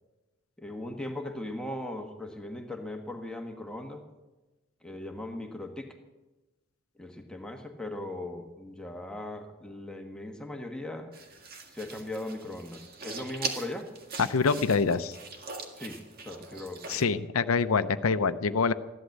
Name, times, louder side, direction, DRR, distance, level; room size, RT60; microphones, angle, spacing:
voice 1, 0.6-4.0 4.8-5.9 7.0-11.1 11.7-13.9 15.8-16.0 16.2-17.0, left 1 dB, 5° left, 3 dB, 1.4 m, -38 dB
sound 1, 11.1-17.0, right 4 dB, 45° right, 1.8 m, -41 dB
voice 2, 14.2-15.2 16.9-18.7, left 5 dB, 90° left, 13 dB, 0.6 m, -25 dB
14.5 x 11.5 x 7.9 m, 1.1 s
head